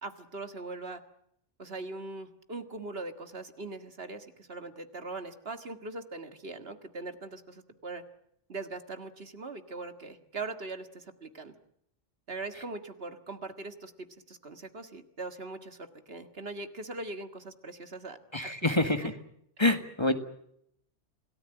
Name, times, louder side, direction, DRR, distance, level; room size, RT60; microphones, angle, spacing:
voice 1, 0.0-1.0 1.6-8.0 8.5-11.6 12.3-18.7 19.0-19.1 19.6-19.7, right 3 dB, 55° right, 8 dB, 2.0 m, -41 dB
voice 2, 18.3-19.1 19.6-20.2, left 2 dB, 25° left, 8 dB, 1.6 m, -26 dB
28.0 x 18.0 x 8.9 m, 0.74 s
omnidirectional pair, 1.2 m